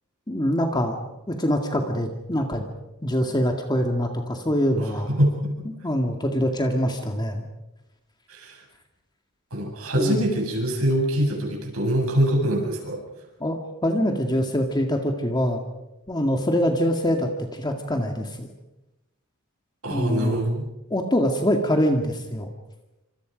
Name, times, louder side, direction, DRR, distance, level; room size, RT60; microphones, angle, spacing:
voice 1, 0.3-1.0 1.3-2.7 3.0-5.1 5.7-7.5 10.0-10.3 13.4-15.6 16.1-18.5 19.9-20.4 20.9-22.5, equal, 20° left, 3 dB, 2.0 m, -24 dB
voice 2, 4.8-5.5 8.3-8.6 9.5-13.0 19.8-20.6, equal, 75° right, 0 dB, 7.7 m, -24 dB
29.0 x 26.0 x 5.2 m, 0.98 s
head